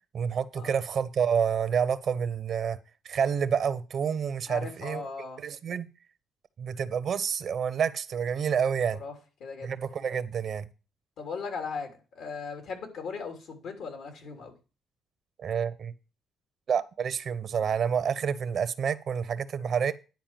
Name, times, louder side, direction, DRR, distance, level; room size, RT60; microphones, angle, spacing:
voice 1, 0.1-2.8 3.0-5.0 5.4-5.9 6.6-9.0 9.6-10.7 15.4-15.9 16.7-19.9, right 7 dB, 60° right, 0.8 m, -28 dB
voice 2, 4.5-5.4 8.9-9.1 9.4-9.7 11.2-14.5, left 5 dB, 75° left, 3.2 m, -38 dB
10.5 x 4.6 x 7.5 m
cardioid pair, 90°, 0 cm